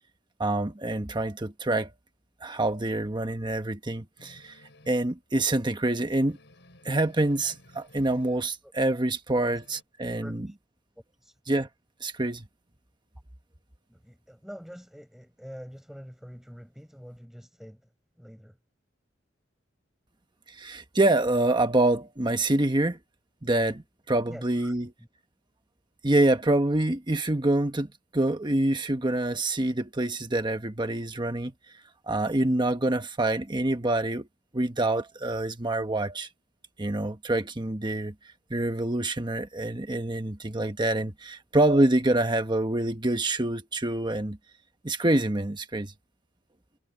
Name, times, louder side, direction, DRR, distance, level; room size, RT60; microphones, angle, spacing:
voice 1, 0.4-1.9 2.4-4.6 4.9-6.4 6.8-9.6 10.0-10.2 11.5-11.7 12.0-12.4 20.5-23.0 23.4-24.9 26.0-31.5 32.1-34.3 34.5-36.3 36.8-38.1 38.5-44.4 44.8-45.9, right 1 dB, 25° right, 1.2 m, -26 dB
sound 1, 4.2-5.1 5.6-5.7 5.9-6.0 6.2-8.6 8.9-9.8, left 1 dB, 65° left, 6.7 m, -56 dB
voice 2, 10.2-10.6 11.0-11.4 13.9-18.6 24.3-25.1, equal, ahead, 6.1 m, -46 dB
head